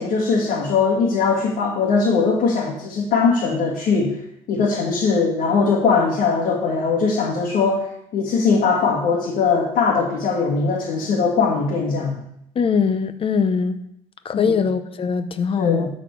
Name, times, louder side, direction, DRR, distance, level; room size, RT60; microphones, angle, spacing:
voice 1, 0.0-4.1 4.5-7.8 8.1-12.2 14.3-14.5 15.6-15.9, left 5 dB, 65° left, -5 dB, 2.1 m, -20 dB
voice 2, 12.6-13.8 14.2-15.9, left 6 dB, 40° left, 11 dB, 0.8 m, -21 dB
12.5 x 4.3 x 4.7 m, 0.77 s
cardioid pair, 95°, 15 cm